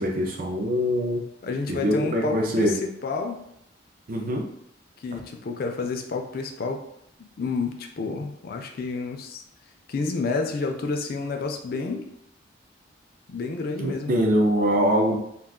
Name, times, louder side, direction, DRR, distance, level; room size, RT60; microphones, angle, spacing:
voice 1, 0.0-1.2 1.7-2.7 4.1-4.5 13.8-15.2, equal, 45° right, 0 dB, 0.4 m, -23 dB
voice 2, 1.4-3.4 5.0-6.8 7.4-9.4 9.9-12.1 13.3-14.1, left 4 dB, 50° left, 4 dB, 0.3 m, -29 dB
2.3 x 2.3 x 3.5 m, 0.77 s
head